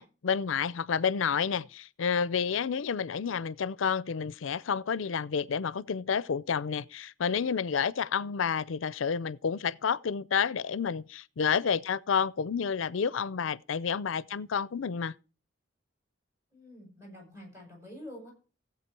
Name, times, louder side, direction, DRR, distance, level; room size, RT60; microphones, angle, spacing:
voice 1, 0.0-15.1, left 6 dB, 75° left, 0.5 m, -30 dB
voice 2, 16.5-18.3, equal, 15° right, 7.6 m, -47 dB
16.0 x 8.1 x 4.6 m
head